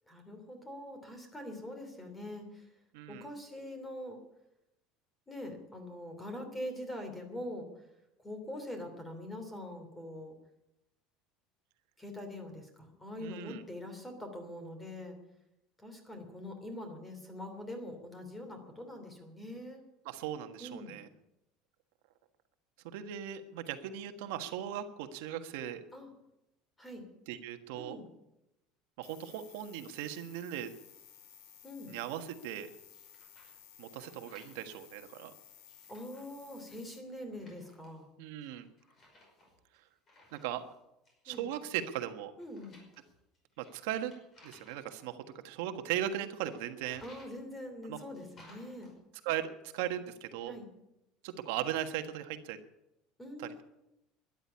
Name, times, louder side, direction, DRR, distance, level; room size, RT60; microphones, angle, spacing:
voice 1, 0.1-2.7 3.1-4.2 5.3-7.7 8.2-10.3 12.0-15.2 15.8-19.8 20.6-21.0 25.9-26.1 26.8-27.0 27.8-28.1 31.6-32.0 35.9-38.1 41.3-41.5 42.4-42.8 47.0-48.9 50.5-50.7 53.2-53.6, left 1 dB, 10° left, 6 dB, 3.0 m, -43 dB
voice 2, 2.9-3.3 13.2-13.6 20.0-21.1 22.8-25.8 27.3-28.0 29.0-30.7 31.9-32.7 33.8-35.3 38.2-38.7 40.3-40.6 41.2-42.3 43.6-44.1 44.4-47.0 47.9-48.0 49.2-50.5 51.2-52.6 53.4-53.6, right 11 dB, 80° right, 7 dB, 1.4 m, -38 dB
sound 1, 29.0-37.0, left 9 dB, 70° left, 2.3 m, -57 dB
sound 2, 32.9-33.6 33.9-34.9 35.5-36.3 37.3-38.0 38.4-40.8 41.0-41.6 42.4-44.9 46.4-47.4 48.1-48.9, left 1 dB, 25° left, 5.5 m, -61 dB
13.0 x 11.0 x 9.7 m, 0.89 s
cardioid pair, 170°, 0 cm